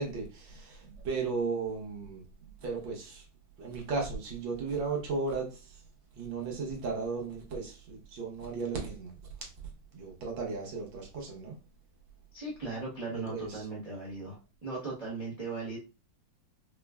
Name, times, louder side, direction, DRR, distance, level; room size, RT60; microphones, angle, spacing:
voice 1, 0.0-2.2 2.6-3.2 3.6-5.8 6.2-9.1 9.9-11.6 13.3-13.6, right 4 dB, 90° right, 1.7 m, -35 dB
voice 2, 12.3-15.8, right 3 dB, 40° right, 0.5 m, -38 dB
5.0 x 2.0 x 2.3 m
omnidirectional pair, 2.0 m